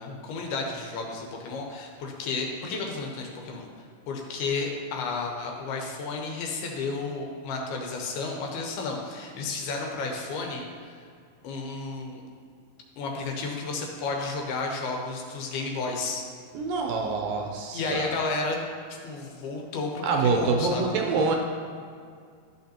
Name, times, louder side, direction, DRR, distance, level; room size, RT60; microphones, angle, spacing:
voice 1, 0.0-3.7 4.1-11.0 11.4-12.2 13.0-16.2 17.7-18.6 19.0-20.8, left 3 dB, 85° left, 1 dB, 3.0 m, -32 dB
voice 2, 16.5-18.2 20.0-21.4, right 4 dB, 80° right, 2 dB, 2.1 m, -26 dB
12.0 x 6.5 x 2.8 m, 2.2 s
omnidirectional pair, 4.4 m